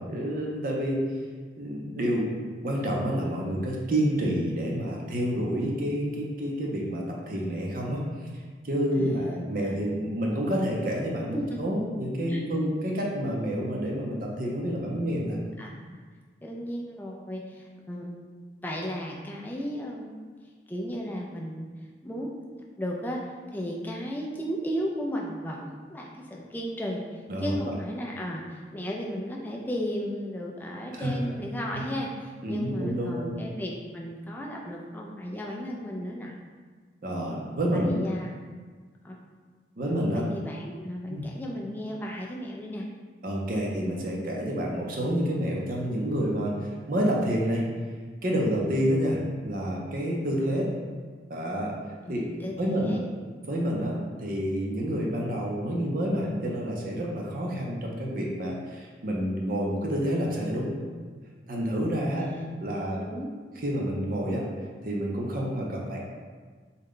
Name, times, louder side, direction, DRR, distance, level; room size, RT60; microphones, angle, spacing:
voice 1, 0.1-1.0 1.6-2.3 2.6-8.3 8.6-15.4 27.3-27.5 30.9-31.1 31.7-31.8 32.4-33.3 37.0-38.0 39.8-40.2 41.1-41.2 43.2-47.6 48.2-50.7 51.3-51.7 52.1-53.0 53.5-60.7 61.5-62.3 62.6-63.0 63.6-64.4 64.8-66.0, equal, 45° right, -2 dB, 0.5 m, -28 dB
voice 2, 8.9-10.0 11.3-11.9 12.3-12.7 15.6-16.0 16.4-18.2 18.6-20.2 20.7-21.7 22.0-22.5 22.8-36.3 37.7-38.3 39.0-39.2 40.1-42.9 52.1-53.0 62.1-62.3 62.9-63.3, equal, 10° left, -2 dB, 0.3 m, -35 dB
3.6 x 2.2 x 3.6 m, 1.5 s
head